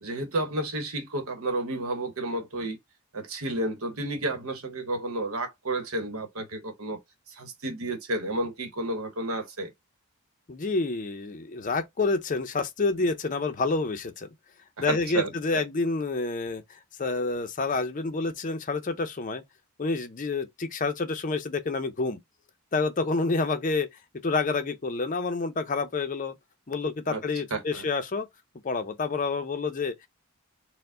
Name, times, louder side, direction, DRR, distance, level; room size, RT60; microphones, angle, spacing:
voice 1, 0.0-2.8 3.1-7.0 7.3-9.7 14.8-15.6 27.1-27.2 27.5-27.8, right 2 dB, 80° right, 1.0 m, -31 dB
voice 2, 10.5-14.3 14.8-19.4 19.8-22.2 22.7-23.9 24.2-26.3 26.7-28.3 28.6-30.1, left 3 dB, 35° left, 0.5 m, -28 dB
4.5 x 2.1 x 3.6 m
head